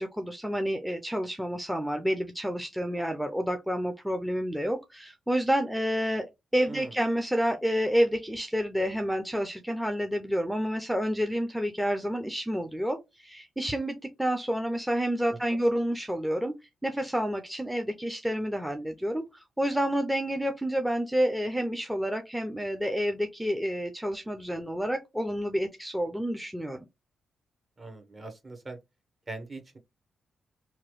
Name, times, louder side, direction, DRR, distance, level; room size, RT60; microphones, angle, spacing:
voice 1, 0.0-6.3 6.5-16.5 16.8-26.8, equal, 5° right, 0.5 m, -29 dB
voice 2, 27.8-28.8 29.3-29.8, right 3 dB, 30° right, 1.0 m, -41 dB
3.0 x 2.2 x 3.0 m
cardioid pair, 70°, 0 cm